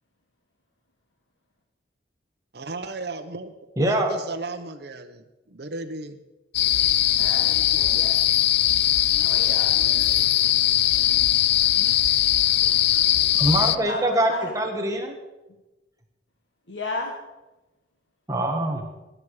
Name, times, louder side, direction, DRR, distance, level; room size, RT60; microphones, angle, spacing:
voice 1, 2.5-3.5 3.8-6.2 9.7-10.3 10.9-11.2, right 3 dB, 60° right, 4 dB, 1.0 m, -36 dB
voice 2, 3.8-4.1 13.4-15.1 18.3-18.8, right 1 dB, 20° right, 2 dB, 1.8 m, -23 dB
sound 1, 6.5-13.8, left 12 dB, 60° left, 0.5 m, -20 dB
voice 3, 7.2-8.2 9.2-9.7 11.8-12.0 13.6-14.6 16.7-17.1, left 2 dB, 80° left, 1 dB, 1.7 m, -34 dB
21.0 x 11.0 x 5.0 m, 1.0 s
head